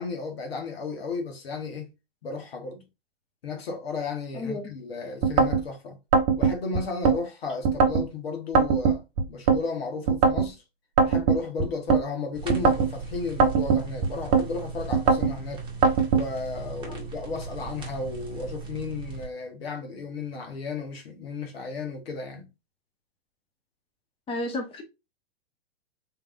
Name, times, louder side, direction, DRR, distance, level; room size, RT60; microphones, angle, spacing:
voice 1, 0.0-1.9 2.2-2.9 3.4-6.0 6.3-9.0 9.3-10.6 11.0-15.6 16.1-22.5, left 4 dB, 75° left, 1.2 m, -34 dB
voice 2, 4.3-4.7 24.3-24.8, left 2 dB, 20° left, 1.0 m, -31 dB
sound 1, 5.2-5.6 6.1-7.2 7.6-8.1 8.5-9.6 10.1-10.5 11.0-12.0 12.5-12.9 13.4-14.5 14.9-15.3 15.8-16.3, right 5 dB, 40° right, 0.7 m, -21 dB
sound 2, 12.3-19.3, right 4 dB, 15° right, 1.2 m, -38 dB
3.5 x 3.3 x 2.4 m
hypercardioid pair, 105°, 31 cm